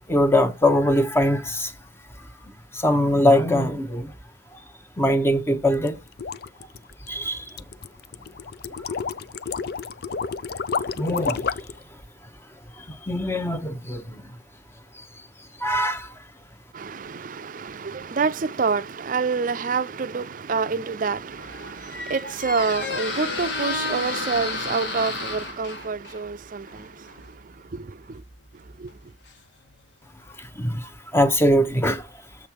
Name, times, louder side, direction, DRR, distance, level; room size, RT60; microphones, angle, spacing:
voice 1, 0.1-1.7 2.7-4.1 5.0-6.0 7.1-7.4 11.0-11.5 13.1-14.0 15.6-16.1 30.6-30.8 31.1-32.0, left 1 dB, 15° left, 1.0 m, -21 dB
sound 1, 5.7-11.8, left 5 dB, 60° left, 0.5 m, -30 dB
voice 2, 16.7-28.2 28.5-29.1, right 5 dB, 50° right, 0.5 m, -28 dB
Squeak, 21.1-29.9, left 3 dB, 75° left, 1.7 m, -33 dB
7.2 x 5.2 x 4.6 m
head